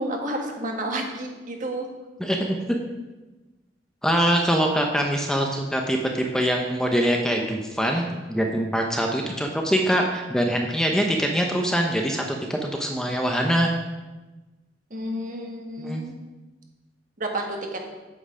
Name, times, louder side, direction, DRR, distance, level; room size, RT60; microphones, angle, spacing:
voice 1, 0.0-1.9 14.9-16.1 17.2-17.9, right 1 dB, 45° right, 2 dB, 1.6 m, -30 dB
voice 2, 4.0-13.7 15.8-16.0, equal, 5° left, 1 dB, 0.7 m, -23 dB
8.5 x 7.9 x 4.9 m, 1.2 s
head